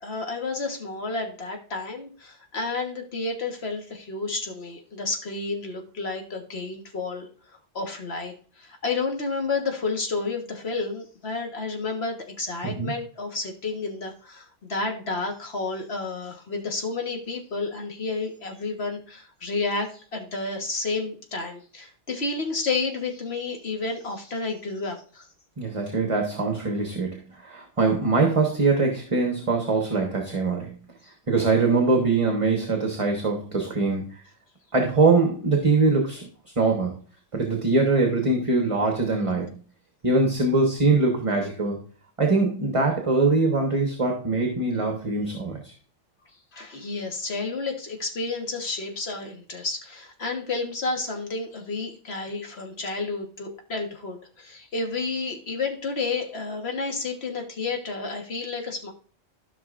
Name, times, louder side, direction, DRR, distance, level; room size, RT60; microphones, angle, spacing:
voice 1, 0.0-7.3 7.8-25.3 46.5-58.9, left 3 dB, 55° left, 3 dB, 1.7 m, -31 dB
voice 2, 25.6-30.8 31.3-34.0 34.7-36.3 36.6-36.9 37.3-39.5 40.0-41.8 42.2-45.7, right 3 dB, 25° right, 2 dB, 1.2 m, -22 dB
13.0 x 5.8 x 2.5 m, 0.41 s
omnidirectional pair, 1.3 m